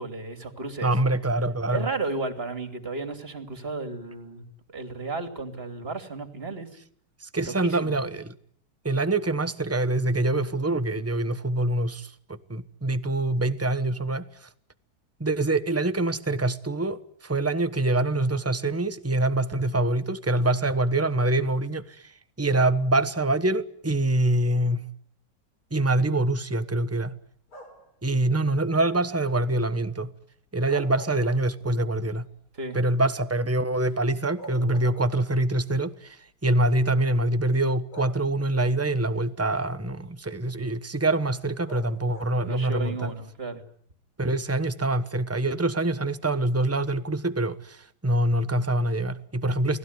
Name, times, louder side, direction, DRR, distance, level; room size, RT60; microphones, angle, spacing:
voice 1, 0.0-0.9 1.7-6.7 7.5-7.9 32.6-32.8 42.4-43.6, right 3 dB, 25° right, 3.1 m, -33 dB
voice 2, 0.8-1.9 7.2-8.3 8.8-14.5 15.2-24.8 25.7-27.1 28.0-30.1 30.5-32.3 32.7-43.1 44.2-49.8, right 2 dB, 10° right, 0.7 m, -25 dB
sound 1, 27.5-28.0 30.5-31.9 32.3-32.4 33.9-34.0 34.4-35.5 36.5-36.7 37.9-38.6 41.7-42.5, right 1 dB, 80° left, 6.5 m, -44 dB
29.5 x 19.5 x 9.6 m
omnidirectional pair, 2.3 m